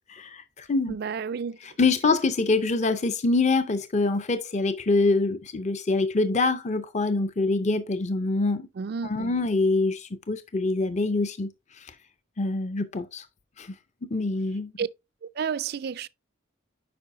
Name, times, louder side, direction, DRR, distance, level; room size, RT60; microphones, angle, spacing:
voice 1, 0.0-1.0 1.6-8.6 9.0-11.5 11.8-11.9 12.4-13.3 13.6-13.7 14.1-14.7, left 3 dB, 35° left, 0.6 m, -25 dB
voice 2, 0.9-1.6 8.8-9.3 14.8-14.9 15.2-16.1, right 6 dB, 50° right, 0.4 m, -31 dB
8.6 x 5.4 x 2.6 m
head